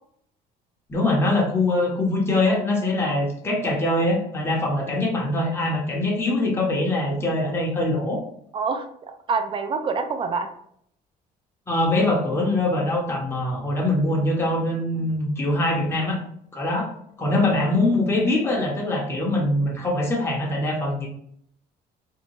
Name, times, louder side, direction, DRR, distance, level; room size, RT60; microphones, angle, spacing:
voice 1, 0.9-8.2 11.7-16.2 16.5-16.9 17.2-21.1, left 2 dB, 15° left, -3 dB, 0.7 m, -23 dB
voice 2, 8.5-10.5, right 5 dB, 30° right, 7 dB, 0.4 m, -27 dB
2.6 x 2.2 x 2.9 m, 0.67 s
cardioid pair, 110°, 17 cm